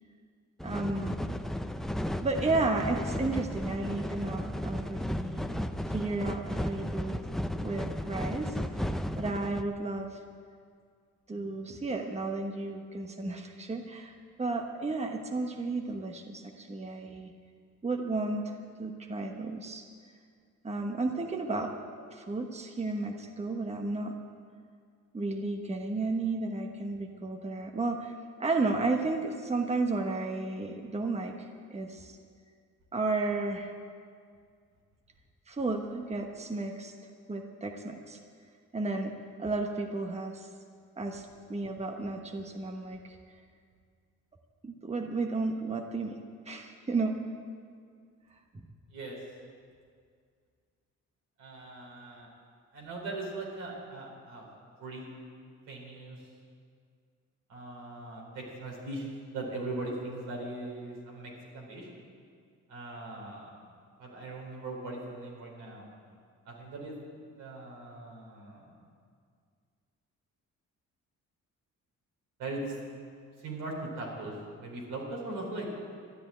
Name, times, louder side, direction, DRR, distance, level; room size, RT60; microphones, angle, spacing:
sound 1, 0.6-9.6, equal, ahead, 0.6 m, -34 dB
voice 1, 0.6-1.2 2.2-5.5 5.9-7.2 7.5-8.6 9.2-10.2 11.3-14.1 14.4-17.3 17.8-19.8 20.6-21.7 22.1-24.2 25.1-28.1 28.4-31.3 31.7-32.2 32.9-33.7 35.5-36.9 37.3-38.2 38.7-39.1 39.4-40.5 41.0-43.2 44.6-46.2 46.4-47.2 48.5-48.7, right 3 dB, 20° right, 3 dB, 1.2 m, -33 dB
voice 2, 51.4-52.3 52.7-54.5 54.8-55.1 55.7-56.3 57.5-61.9 62.7-63.6 64.0-65.9 66.4-68.7 72.4-72.7 73.4-75.7, right 2 dB, 85° right, -2 dB, 4.4 m, -40 dB
13.0 x 10.5 x 8.9 m, 2.1 s
cardioid pair, 90°, 30 cm